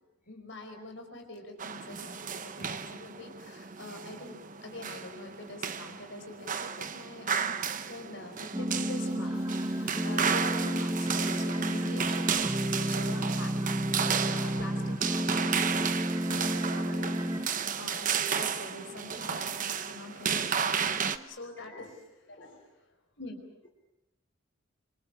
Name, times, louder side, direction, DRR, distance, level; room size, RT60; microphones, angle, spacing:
voice 1, 0.3-7.6 7.9-13.5 14.0-15.9 16.3-17.2 17.8-23.7, left 2 dB, 60° left, 4 dB, 4.9 m, -45 dB
sound 1, 1.6-21.2, right 7 dB, 40° right, 0.9 m, -33 dB
sound 2, 8.5-17.5, right 1 dB, 15° right, 1.4 m, -31 dB
voice 2, 9.5-10.3 11.3-11.7 12.7-12.9 21.7-22.0 22.3-22.7, left 2 dB, 40° left, -1 dB, 4.4 m, -56 dB
28.0 x 26.5 x 5.9 m, 0.90 s
head